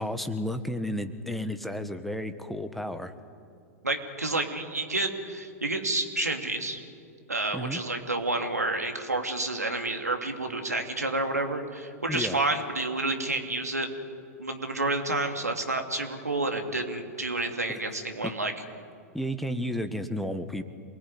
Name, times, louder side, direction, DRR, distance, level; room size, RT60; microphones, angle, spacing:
voice 1, 0.0-3.1 7.5-7.8 12.1-12.4 18.2-18.3 19.1-20.6, equal, ahead, 9 dB, 1.7 m, -32 dB
voice 2, 3.8-6.8 7.3-13.9 14.4-18.5, right 2 dB, 85° right, 4 dB, 2.7 m, -29 dB
27.0 x 19.5 x 9.6 m, 2.4 s
figure-of-eight pair, 95°, 8 cm